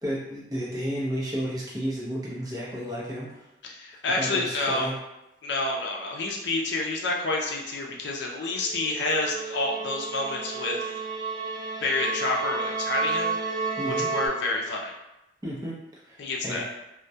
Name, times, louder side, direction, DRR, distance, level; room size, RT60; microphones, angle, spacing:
voice 1, 0.0-3.5 4.2-5.0 13.8-14.1 15.4-15.8 16.1-16.2 16.4-16.7, equal, 20° right, -6 dB, 0.6 m, -32 dB
voice 2, 3.6-4.9 5.4-10.8 11.8-13.4 13.9-14.9 16.2-16.6, left 2 dB, 70° left, -1 dB, 0.4 m, -28 dB
sound 1, 8.4-14.3, right 4 dB, 70° right, 0.5 m, -31 dB
2.2 x 2.1 x 2.7 m, 0.93 s
head